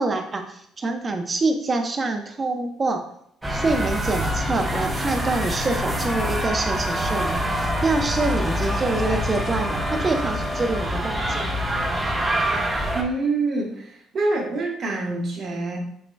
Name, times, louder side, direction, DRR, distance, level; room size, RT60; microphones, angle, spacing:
voice 1, 0.0-3.0 3.5-11.5, right 3 dB, 35° right, 5 dB, 0.8 m, -26 dB
sound 1, 3.4-13.0, equal, 15° right, 1.2 m, -25 dB
sound 2, 6.7-11.0, left 2 dB, 30° left, 0.5 m, -35 dB
voice 2, 12.9-15.8, right 3 dB, 50° right, -1 dB, 1.3 m, -26 dB
7.6 x 3.1 x 2.2 m, 0.71 s
hypercardioid pair, 60°, 0 cm